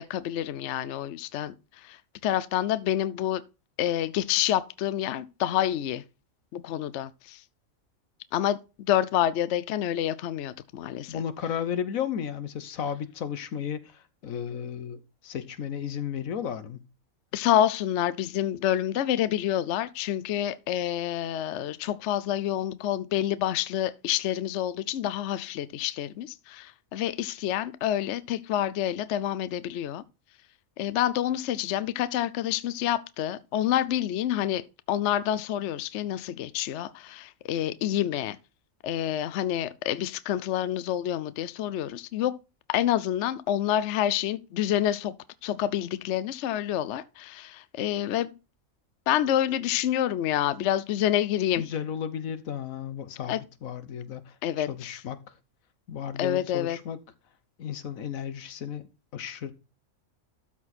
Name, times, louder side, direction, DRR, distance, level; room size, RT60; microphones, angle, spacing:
voice 1, 0.0-1.5 1.8-3.4 3.8-6.0 6.5-7.4 8.3-11.2 17.3-30.0 30.8-38.4 38.8-42.4 42.7-45.1 45.4-48.3 49.1-51.7 53.3-53.4 54.4-55.0 56.2-56.8, left 11 dB, 65° left, 0.8 m, -28 dB
voice 2, 11.1-16.8 51.6-55.3 55.9-57.0 57.6-59.5, left 8 dB, 80° left, 1.4 m, -34 dB
13.0 x 4.6 x 4.1 m
omnidirectional pair, 1.4 m